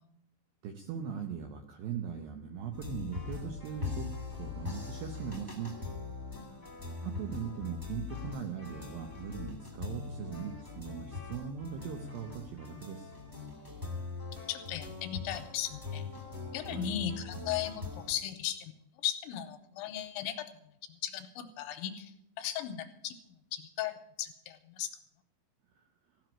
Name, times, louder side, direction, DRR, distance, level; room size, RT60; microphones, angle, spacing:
voice 1, 0.6-5.7 6.5-6.6 7.0-13.1 16.6-16.9 25.8-25.9, right 8 dB, 90° right, 5 dB, 2.0 m, -40 dB
sound 1, 2.7-18.1, left 4 dB, 25° right, 0.4 m, -41 dB
voice 2, 14.5-16.0 16.5-18.8 19.0-20.4 20.9-22.1 22.4-24.9, left 11 dB, 80° left, 7 dB, 2.9 m, -37 dB
15.5 x 6.2 x 9.9 m, 0.80 s
omnidirectional pair, 5.6 m